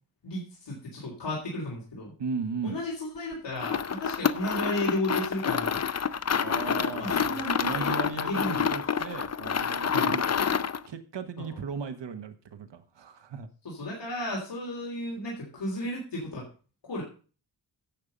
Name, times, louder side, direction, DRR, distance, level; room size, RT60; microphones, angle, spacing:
voice 1, 0.2-2.1 2.6-5.8 7.0-8.6 9.9-10.2 11.4-11.6 13.7-16.5 16.9-17.0, left 1 dB, 70° left, -3 dB, 3.5 m, -34 dB
voice 2, 2.2-2.8 6.4-10.4 10.9-13.5, right 5 dB, 75° right, 8 dB, 1.3 m, -36 dB
sound 1, 3.5-10.9, left 7 dB, 35° left, 0.6 m, -28 dB
10.5 x 7.3 x 5.2 m, 0.37 s
wide cardioid pair, 90°, 43 cm